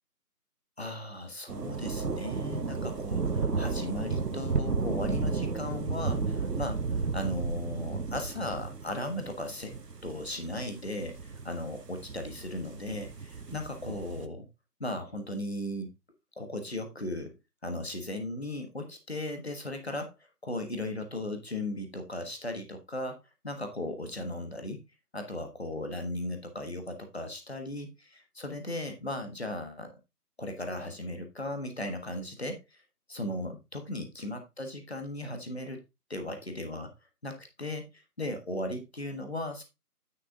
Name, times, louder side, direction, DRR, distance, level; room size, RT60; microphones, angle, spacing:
voice 1, 0.8-9.7 10.0-14.5 14.8-16.0 16.4-17.3 17.6-20.1 20.4-23.2 23.4-24.8 25.1-29.9 30.4-32.6 33.1-35.8 36.1-36.9 37.2-39.6, left 1 dB, 40° left, 6 dB, 1.4 m, -37 dB
sound 1, 1.5-14.3, right 4 dB, 90° right, 1.2 m, -33 dB
9.8 x 5.4 x 3.6 m, 0.24 s
figure-of-eight pair, 180°, 47 cm